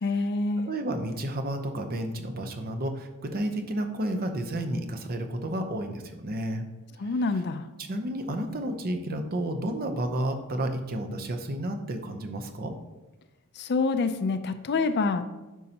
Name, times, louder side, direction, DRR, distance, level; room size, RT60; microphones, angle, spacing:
voice 1, 0.0-0.7 7.0-7.6 13.6-15.2, left 3 dB, 50° left, 10 dB, 0.4 m, -26 dB
voice 2, 0.7-6.6 7.8-12.7, right 1 dB, 40° right, 6 dB, 0.7 m, -31 dB
9.2 x 5.4 x 2.9 m, 1.1 s
head